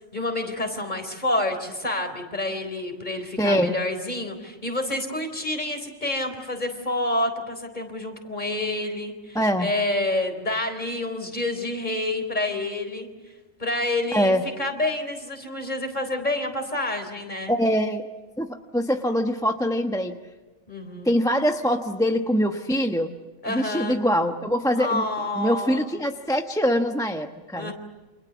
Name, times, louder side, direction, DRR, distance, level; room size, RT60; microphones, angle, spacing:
voice 1, 0.1-13.1 13.6-17.6 20.7-21.1 23.4-24.0 24.8-25.9 27.5-27.7, left 2 dB, 35° left, 6 dB, 4.1 m, -28 dB
voice 2, 3.4-3.8 9.3-9.7 14.1-14.4 17.5-18.1 18.4-20.2 21.0-23.1 23.5-25.1 25.4-27.7, equal, 5° left, 4 dB, 1.0 m, -23 dB
29.0 x 27.0 x 7.1 m, 1.2 s
omnidirectional pair, 1.4 m